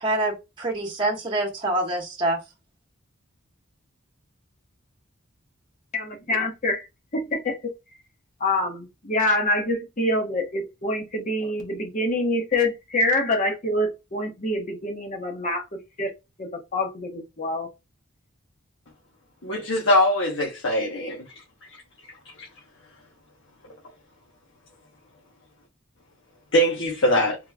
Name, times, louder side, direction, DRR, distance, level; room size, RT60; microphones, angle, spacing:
voice 1, 0.0-2.4, right 2 dB, 25° right, 1.0 m, -26 dB
voice 2, 5.9-6.9 7.1-7.7 8.4-15.6 16.0-16.1 16.4-17.7, left 1 dB, 40° left, 1.1 m, -26 dB
voice 3, 19.4-21.2 22.4-22.5 26.5-27.4, equal, 70° left, 1.0 m, -22 dB
3.7 x 3.0 x 2.3 m
head